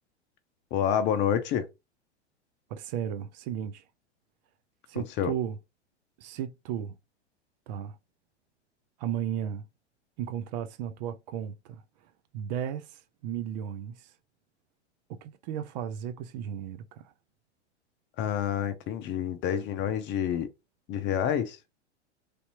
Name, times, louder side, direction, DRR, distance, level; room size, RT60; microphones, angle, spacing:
voice 1, 0.7-1.7 5.0-5.3 18.2-20.5 20.9-21.6, left 9 dB, 30° left, 0.6 m, -28 dB
voice 2, 2.7-3.8 4.9-5.6 6.2-6.9 7.7-8.0 9.0-9.7 10.2-11.8 12.3-14.1 15.1-17.1, right 9 dB, 40° right, 0.4 m, -35 dB
3.3 x 2.7 x 2.9 m
figure-of-eight pair, 95°, 35 cm